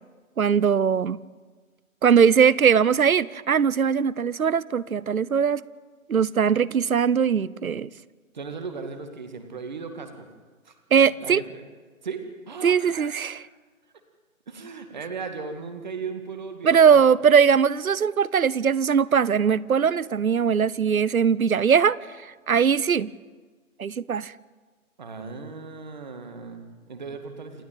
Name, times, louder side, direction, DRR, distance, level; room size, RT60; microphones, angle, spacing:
voice 1, 0.4-1.2 2.0-5.6 6.1-7.9 10.9-11.4 12.6-13.5 16.6-23.1 23.8-24.3, right 7 dB, 80° right, 22 dB, 0.9 m, -20 dB
voice 2, 8.3-10.3 10.7-10.8 11.2-11.6 12.0-13.3 14.5-17.1 25.0-27.6, right 4 dB, 30° right, 7 dB, 2.0 m, -37 dB
28.0 x 12.5 x 9.1 m, 1.4 s
hypercardioid pair, 170°, 42 cm